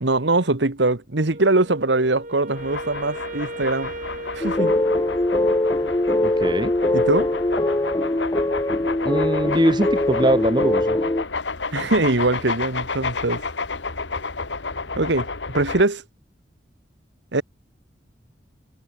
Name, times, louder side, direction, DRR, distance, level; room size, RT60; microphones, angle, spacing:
voice 1, 0.0-3.9 4.3-4.7 6.9-7.3 11.7-13.4 15.0-16.0 17.3-17.4, right 2 dB, 70° right, 1.6 m, -22 dB
Wind instrument woodwind instrument, 1.3-5.7, right 2 dB, 45° right, 6.0 m, -37 dB
sound 1, 2.6-15.8, left 4 dB, 75° left, 1.9 m, -31 dB
sound 2, 4.4-11.2, left 1 dB, 20° left, 0.7 m, -22 dB
voice 2, 6.2-6.7 9.0-11.0, right 1 dB, 25° right, 1.2 m, -22 dB
head